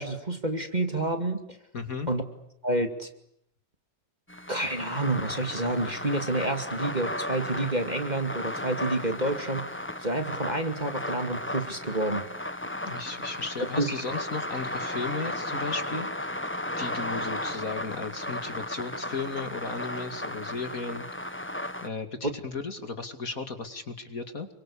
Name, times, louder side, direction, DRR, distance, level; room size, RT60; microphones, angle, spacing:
voice 1, 0.0-1.6 2.1-2.2 2.6-3.1 4.5-9.7 10.0-12.2 13.8-14.0, right 2 dB, 25° right, 7 dB, 2.5 m, -29 dB
voice 2, 1.7-2.1 12.8-16.3 16.8-21.1 21.8-24.5, left 4 dB, 50° left, 8 dB, 2.8 m, -35 dB
sound 1, 4.3-21.9, left 1 dB, 5° left, 1.3 m, -35 dB
28.5 x 24.5 x 8.5 m, 0.73 s
omnidirectional pair, 2.0 m